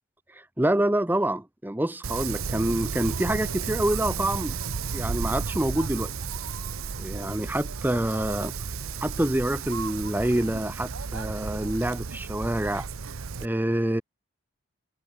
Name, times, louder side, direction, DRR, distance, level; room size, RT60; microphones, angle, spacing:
voice 1, 0.3-4.6 4.9-6.1 7.0-8.5 9.0-12.9 13.4-14.0, right 1 dB, 10° right, 0.6 m, -27 dB
Wind, 2.0-13.5, right 5 dB, 75° right, 0.8 m, -33 dB
sound 1, 4.2-12.2, right 1 dB, 50° right, 6.0 m, -53 dB
head